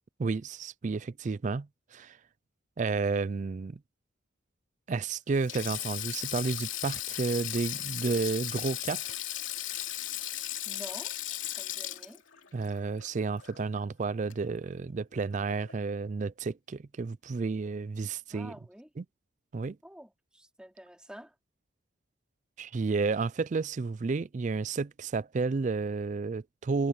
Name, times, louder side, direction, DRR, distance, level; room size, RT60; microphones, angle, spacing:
voice 1, 0.2-2.2 2.8-3.8 4.9-9.0 12.5-18.5 19.0-19.1 19.5-19.8 22.6-26.9, right 4 dB, 40° right, 0.4 m, -31 dB
Sink (filling or washing), 5.3-13.8 14.1-14.3 15.5-15.7, left 13 dB, 75° left, 2.8 m, -37 dB
voice 2, 10.6-11.1 11.6-12.2 18.3-18.9 19.8-21.3, equal, 5° right, 3.1 m, -48 dB
head